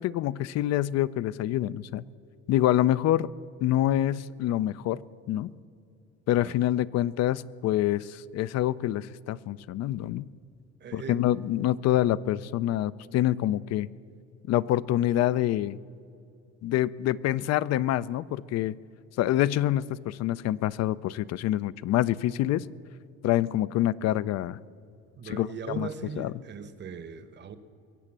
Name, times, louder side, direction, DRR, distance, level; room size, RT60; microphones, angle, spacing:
voice 1, 0.0-2.0 2.5-3.3 3.6-5.0 5.3-5.5 6.3-10.2 10.9-13.9 14.5-15.8 16.6-18.7 19.2-22.7 23.2-24.6 25.3-25.9 26.2-26.3, left 13 dB, 60° left, 18 dB, 0.5 m, -26 dB
voice 2, 10.8-11.4 25.2-27.6, right 6 dB, 35° right, 12 dB, 0.9 m, -39 dB
22.0 x 8.1 x 7.4 m, 2.5 s
cardioid pair, 115°, 30 cm